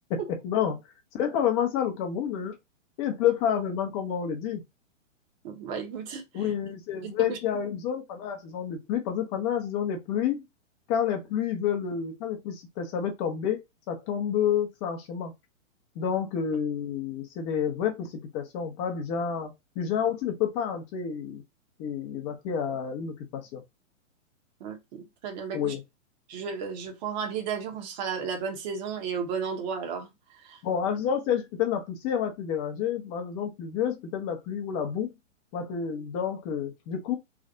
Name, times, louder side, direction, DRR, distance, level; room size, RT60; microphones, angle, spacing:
voice 1, 0.1-0.8 1.1-2.6 3.0-4.6 6.3-10.4 10.9-13.6 13.9-15.3 16.0-19.5 19.8-21.4 21.8-23.6 25.5-25.8 30.6-35.1 35.5-37.2, left 8 dB, 25° left, 0.7 m, -29 dB
voice 2, 5.4-6.5 7.0-7.4 24.6-25.7 26.3-30.6, right 6 dB, 35° right, 1.2 m, -34 dB
3.3 x 2.5 x 3.8 m
hypercardioid pair, 145°, 39 cm